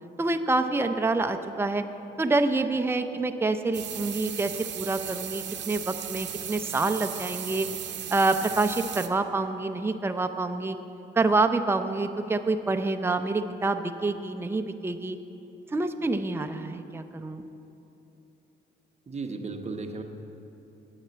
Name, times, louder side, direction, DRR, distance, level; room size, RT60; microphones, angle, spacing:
voice 1, 0.2-1.8 2.2-7.7 8.1-10.8 11.2-15.2 15.7-17.4, right 3 dB, 10° right, 7 dB, 0.6 m, -27 dB
sound 1, 3.7-9.1, right 10 dB, 65° right, 0.8 m, -36 dB
voice 2, 19.1-20.0, right 3 dB, 35° right, 4 dB, 1.1 m, -35 dB
8.9 x 8.5 x 8.0 m, 2.9 s
cardioid pair, 90°, 20 cm